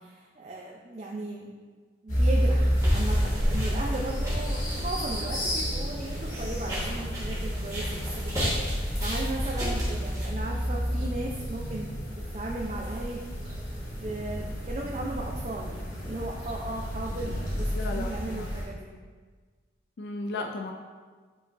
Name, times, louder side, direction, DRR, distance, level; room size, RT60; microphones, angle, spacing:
voice 1, 0.0-1.5 2.0-13.6 14.0-15.7 16.1-18.9, right 2 dB, 35° right, -2 dB, 0.5 m, -36 dB
sound 1, 2.1-18.6, equal, 45° left, 1.7 m, -31 dB
sound 2, 2.8-10.3, equal, 20° right, 1.7 m, -32 dB
sound 3, 8.1-17.7, equal, 60° right, 1.0 m, -44 dB
voice 2, 17.7-18.5 20.0-20.7, left 3 dB, 65° left, 2 dB, 0.4 m, -35 dB
7.6 x 5.3 x 2.6 m, 1.5 s
head